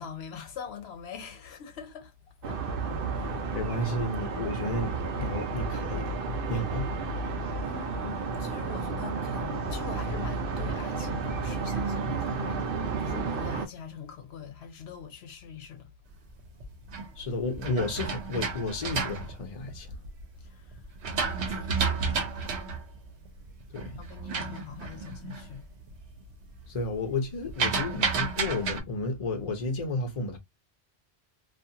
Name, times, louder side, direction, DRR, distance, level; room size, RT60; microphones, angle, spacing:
voice 1, 0.0-3.0 3.3-3.4 7.6-12.7 13.0-15.9 20.4-22.5 24.0-25.7, left 7 dB, 80° left, 0.9 m, -43 dB
sound 1, 2.4-13.7, right 4 dB, 60° right, 0.8 m, -32 dB
voice 2, 3.5-6.2 6.5-6.9 17.2-19.9 23.7-24.0 26.7-30.4, left 2 dB, 40° left, 0.7 m, -32 dB
sound 2, 16.4-20.2 20.7-25.5 25.9-26.3 26.6-28.8, right 5 dB, 85° right, 1.0 m, -31 dB
2.5 x 2.4 x 2.7 m
omnidirectional pair, 1.1 m